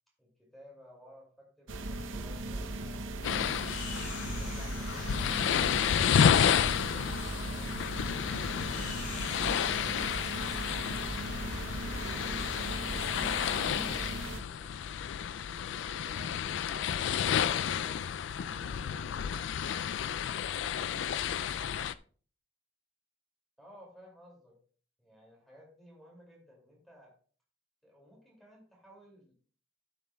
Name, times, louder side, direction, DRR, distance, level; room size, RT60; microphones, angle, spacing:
voice 1, 0.2-3.1 23.6-24.6 25.0-27.2 27.8-29.4, equal, ahead, -2 dB, 2.4 m, -57 dB
sound 1, 1.7-14.4, right 2 dB, 80° right, 0.8 m, -38 dB
sound 2, 3.2-21.9, left 8 dB, 65° left, 0.3 m, -31 dB
sound 3, 3.6-14.0, left 2 dB, 40° left, 2.8 m, -47 dB
voice 2, 12.1-14.8 15.3-18.0 18.4-20.3 20.5-21.9, equal, 60° right, 0 dB, 3.2 m, -56 dB
13.5 x 7.1 x 2.3 m, 0.43 s
head